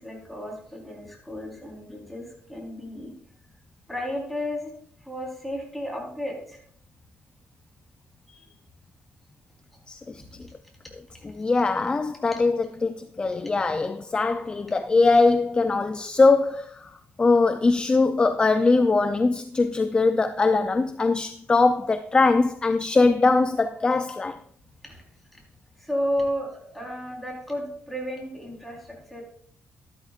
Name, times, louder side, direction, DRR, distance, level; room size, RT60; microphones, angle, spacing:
voice 1, 0.0-3.1 3.9-4.7 5.0-6.6 8.3-8.5 11.1-11.3 24.8-25.0 25.3-25.4 25.8-29.2, equal, ahead, 4.0 m, -33 dB
voice 2, 9.9-10.2 11.2-16.9 17.2-24.4, left 3 dB, 20° left, 0.5 m, -21 dB
13.0 x 12.0 x 2.5 m
cardioid pair, 110°, 4 cm